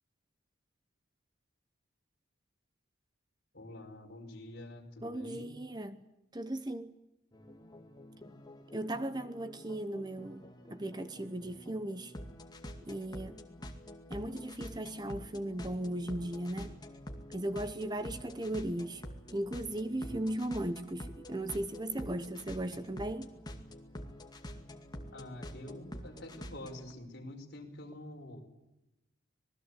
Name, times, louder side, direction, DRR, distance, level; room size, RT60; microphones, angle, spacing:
voice 1, 3.5-5.6 11.4-11.5 20.0-20.3 25.1-28.4, left 1 dB, 50° left, 5.3 m, -47 dB
voice 2, 5.0-6.0 6.3-6.9 8.7-12.1 12.8-13.5 14.1-16.8 17.3-19.0 19.3-23.3, right 1 dB, 20° right, 0.9 m, -37 dB
sound 1, 7.3-26.9, equal, 20° left, 2.2 m, -47 dB
26.0 x 20.0 x 8.4 m
head